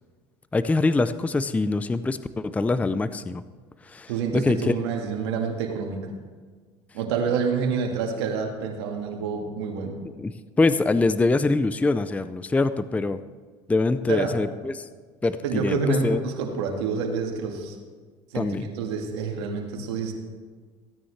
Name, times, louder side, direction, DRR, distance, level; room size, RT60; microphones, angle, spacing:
voice 1, 0.5-3.4 3.8-4.7 10.2-13.2 13.7-14.9 15.2-16.2 18.3-18.7, left 3 dB, 10° left, 13 dB, 0.4 m, -24 dB
voice 2, 4.1-6.0 6.9-10.0 14.1-14.3 15.4-17.8 18.3-20.1, right 5 dB, 90° right, 2 dB, 1.8 m, -28 dB
16.0 x 9.4 x 3.3 m, 1.5 s
supercardioid pair, 95°, 14 cm